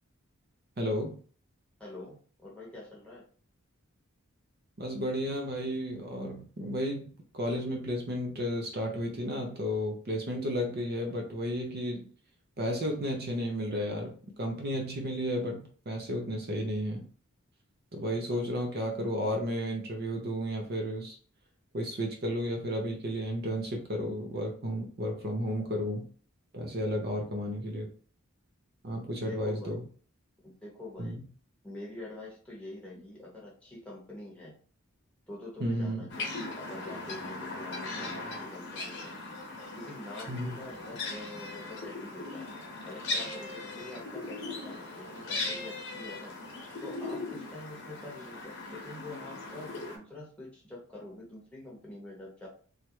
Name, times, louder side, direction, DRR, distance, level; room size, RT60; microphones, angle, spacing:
voice 1, 0.8-1.2 4.8-12.1 12.6-17.1 17.9-21.2 21.7-26.1 26.5-27.9 28.8-29.9 31.0-31.2 35.6-36.1 40.3-40.6, equal, 45° right, 2 dB, 0.6 m, -33 dB
voice 2, 1.8-3.2 18.3-18.4 29.3-29.8 30.4-31.2 31.6-34.5 35.3-39.2 39.7-42.5 42.8-46.4 46.8-52.5, left 2 dB, 5° left, -5 dB, 0.9 m, -45 dB
sound 1, 36.1-50.0, left 3 dB, 55° left, 0.8 m, -39 dB
3.1 x 2.4 x 2.9 m, 0.42 s
head